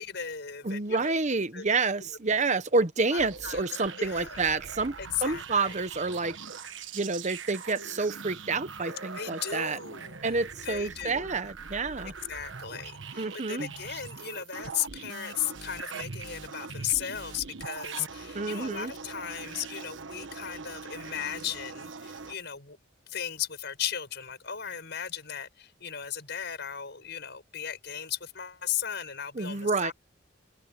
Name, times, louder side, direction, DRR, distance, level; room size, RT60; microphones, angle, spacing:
voice 1, 0.0-1.1 1.5-1.6 2.0-2.2 3.1-3.7 3.9-4.4 5.0-5.7 9.1-11.4 12.0-22.8 23.1-29.9, left 9 dB, 60° left, 7.1 m, -36 dB
voice 2, 0.6-4.9 5.2-6.4 6.9-9.8 10.2-12.1 13.2-13.7 18.3-18.9 29.4-29.9, right 3 dB, 35° right, 1.0 m, -28 dB
sound 1, 3.2-22.3, right 5 dB, 70° right, 1.4 m, -42 dB
head